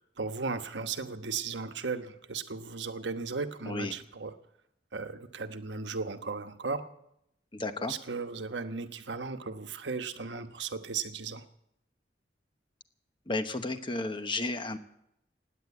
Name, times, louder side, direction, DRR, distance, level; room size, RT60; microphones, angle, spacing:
voice 1, 0.0-4.3 4.9-6.9 7.6-11.4, right 4 dB, 85° right, 8 dB, 1.1 m, -36 dB
voice 2, 7.5-7.9 13.3-14.8, left 2 dB, 30° left, 9 dB, 1.0 m, -33 dB
17.0 x 9.5 x 8.2 m, 0.79 s
head